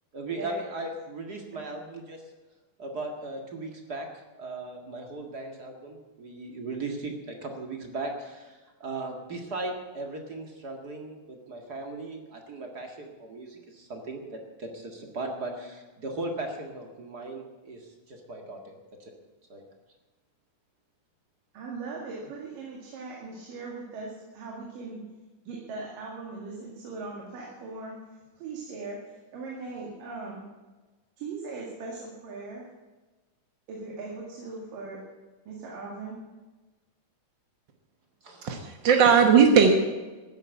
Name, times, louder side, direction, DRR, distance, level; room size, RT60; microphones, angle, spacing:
voice 1, 0.1-2.2 2.8-4.1 4.4-19.1 19.5-19.6 38.2-38.5, right 2 dB, 35° right, 3 dB, 1.8 m, -37 dB
voice 2, 21.5-25.0 25.5-28.0 28.4-29.0 29.3-30.5 31.2-32.7 33.7-35.0 35.5-36.2, right 3 dB, 85° right, -2 dB, 3.8 m, -39 dB
voice 3, 38.4-39.7, right 6 dB, 65° right, 4 dB, 1.1 m, -18 dB
14.0 x 9.8 x 8.5 m, 1.2 s
omnidirectional pair, 3.8 m